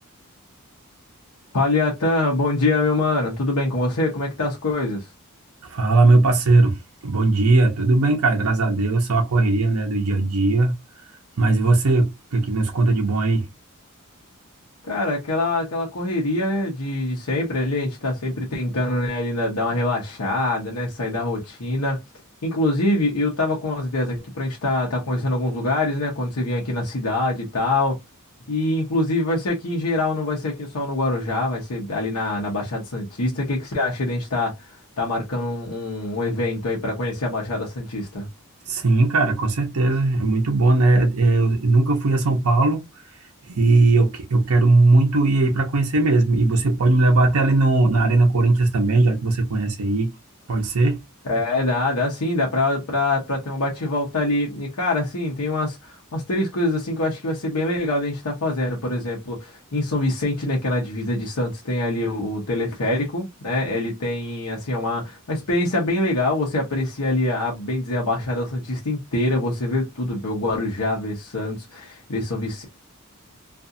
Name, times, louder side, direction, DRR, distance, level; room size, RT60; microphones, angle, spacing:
voice 1, 1.5-5.1 14.8-22.0 22.4-28.0 28.5-38.3 51.2-72.6, left 2 dB, 90° left, 0.8 m, -24 dB
voice 2, 5.6-10.7 11.4-13.5 38.7-42.8 43.5-50.1 50.5-51.0, right 2 dB, 75° right, 0.7 m, -18 dB
2.5 x 2.4 x 2.6 m
head